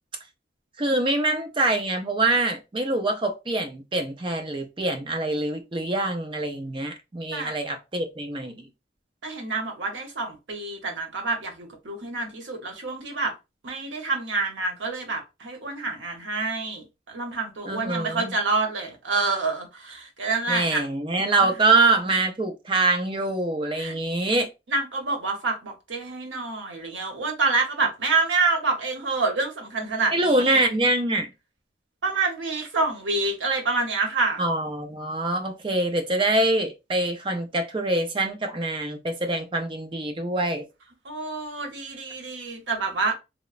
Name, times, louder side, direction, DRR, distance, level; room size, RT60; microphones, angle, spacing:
voice 1, 0.8-8.7 17.7-18.3 20.5-24.5 30.1-31.3 34.4-40.7, right 2 dB, 25° right, 0.4 m, -24 dB
voice 2, 9.2-13.3 13.6-20.8 21.2-21.5 23.7-24.0 24.7-30.6 32.0-34.4 41.0-43.1, right 3 dB, 90° right, 0.8 m, -27 dB
3.0 x 2.0 x 2.4 m
head